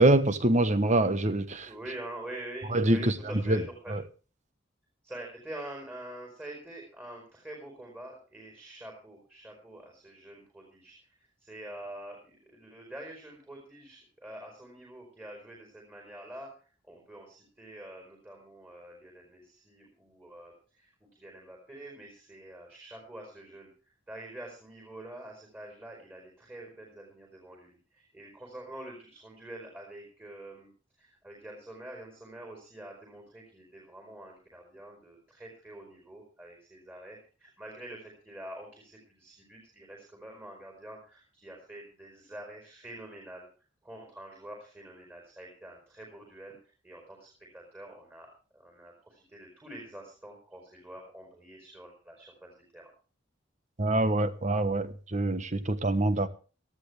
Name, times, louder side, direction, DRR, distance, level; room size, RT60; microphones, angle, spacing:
voice 1, 0.0-1.7 2.7-3.1 3.5-3.6 3.9-4.0 53.8-56.3, right 2 dB, 40° right, 1.2 m, -25 dB
voice 2, 1.6-4.0 5.0-16.5 16.8-23.7 24.1-30.7 31.0-43.4 43.8-46.5 46.8-47.3 47.5-52.9, right 1 dB, 10° right, 4.8 m, -46 dB
18.5 x 13.5 x 3.5 m
head